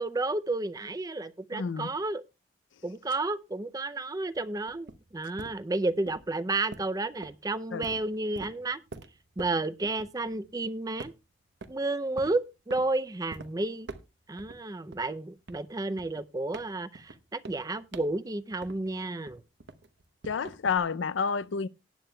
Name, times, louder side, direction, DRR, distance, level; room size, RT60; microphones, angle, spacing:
voice 1, 0.0-2.2 2.8-8.8 9.4-11.1 11.7-13.9 14.3-19.4, right 2 dB, 20° right, 0.5 m, -31 dB
voice 2, 1.5-1.9 7.7-7.9 20.3-21.7, left 5 dB, 85° left, 0.5 m, -29 dB
sound 1, 4.3-10.6 11.0-11.8 12.2-12.9 13.3-13.5 13.8-14.6 14.9-19.0 19.3-20.8, right 3 dB, 70° right, 0.9 m, -46 dB
18.5 x 9.0 x 2.2 m
head